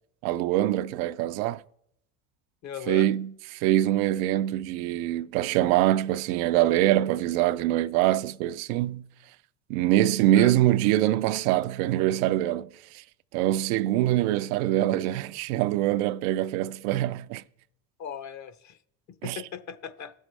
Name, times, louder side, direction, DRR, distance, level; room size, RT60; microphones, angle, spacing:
voice 1, 0.2-1.6 2.9-9.1 9.7-13.0 13.3-17.4 19.2-19.4, right 14 dB, 80° right, 0.5 m, -24 dB
voice 2, 2.6-3.1 10.3-10.5 18.0-18.8 19.2-20.1, left 8 dB, 40° left, 0.9 m, -38 dB
17.0 x 6.3 x 3.2 m
supercardioid pair, 90°, 42 cm